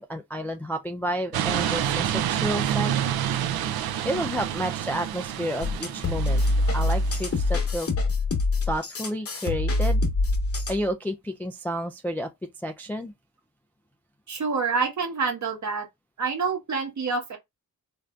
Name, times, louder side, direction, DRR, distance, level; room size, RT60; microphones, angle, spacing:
voice 1, 0.0-2.9 4.0-6.4 6.7-7.9 8.7-10.0 10.7-12.3 12.6-13.1, equal, 5° left, 0.3 m, -30 dB
sound 1, 1.3-7.6, right 10 dB, 75° right, 0.5 m, -28 dB
sound 2, 5.6-10.8, left 2 dB, 40° left, 1.0 m, -25 dB
voice 2, 14.3-15.9 16.2-17.4, right 4 dB, 50° right, 1.1 m, -27 dB
3.2 x 2.6 x 2.3 m
cardioid pair, 85°, 37 cm